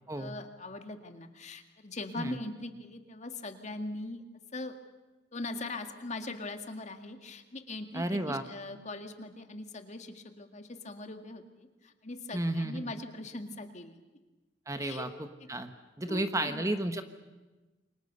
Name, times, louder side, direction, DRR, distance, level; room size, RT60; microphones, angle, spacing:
voice 1, 0.1-4.2 4.5-4.8 5.3-14.0 14.8-15.1 15.4-15.5 16.1-16.6, left 2 dB, 40° left, 7 dB, 2.1 m, -41 dB
voice 2, 7.9-8.4 12.3-12.9 14.7-15.1 15.5-15.7 16.0-17.0, right 1 dB, 15° right, 8 dB, 1.2 m, -32 dB
28.5 x 24.0 x 6.8 m, 1.2 s
head